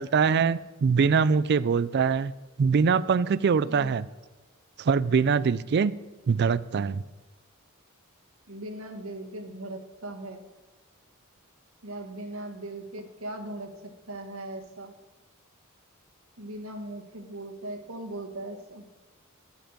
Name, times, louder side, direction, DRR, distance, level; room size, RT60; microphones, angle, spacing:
voice 1, 0.0-2.3 2.6-4.1 4.8-5.9 6.3-7.0, right 5 dB, 50° right, 18 dB, 0.4 m, -23 dB
voice 2, 3.6-4.0 8.5-10.4 11.8-14.9 16.4-18.9, right 1 dB, 70° right, 4 dB, 1.5 m, -39 dB
12.5 x 5.8 x 7.3 m, 1.2 s
head